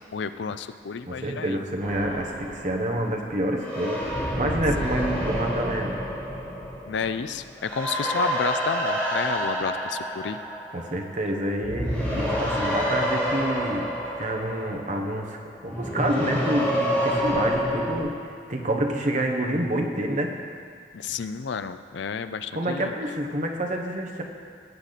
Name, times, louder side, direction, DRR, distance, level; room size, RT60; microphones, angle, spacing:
voice 1, 0.0-1.6 4.8-4.9 6.9-10.4 20.9-22.9, left 5 dB, 65° left, 11 dB, 0.4 m, -31 dB
voice 2, 1.1-4.0 4.4-6.0 10.7-13.9 14.2-20.3 22.5-24.2, right 1 dB, 40° right, 2 dB, 1.2 m, -28 dB
sound 1, 1.8-11.2 11.5-18.0, equal, 5° left, 2.7 m, -29 dB
17.5 x 8.2 x 4.1 m, 2.1 s
head